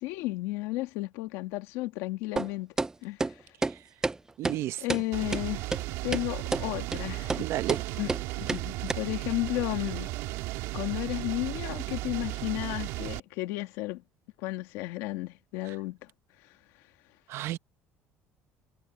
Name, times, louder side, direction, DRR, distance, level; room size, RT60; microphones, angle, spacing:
voice 1, 0.0-2.7 3.0-3.4 4.8-5.6 6.0-7.4 8.0-8.1 8.4-10.1 10.7-14.0 14.4-16.1, left 19 dB, 90° left, 1.9 m, -33 dB
sound 1, 2.4-2.5 2.8-2.9 3.2-3.3 3.6-3.7 4.0-4.2 4.4-4.6 4.9-5.0 5.3-5.4 5.7-5.8 6.1-6.2 6.5-6.6 6.9-7.0 7.3-7.4 7.7-7.8 8.1-8.2 8.5-8.6 8.9-9.0, right 3 dB, 10° right, 0.4 m, -29 dB
voice 2, 4.4-4.8 7.4-7.8 15.6-15.7 17.3-17.6, right 14 dB, 65° right, 0.8 m, -32 dB
sound 2, 5.1-13.2, right 18 dB, 85° right, 2.7 m, -35 dB
cardioid pair, 125°, 5 cm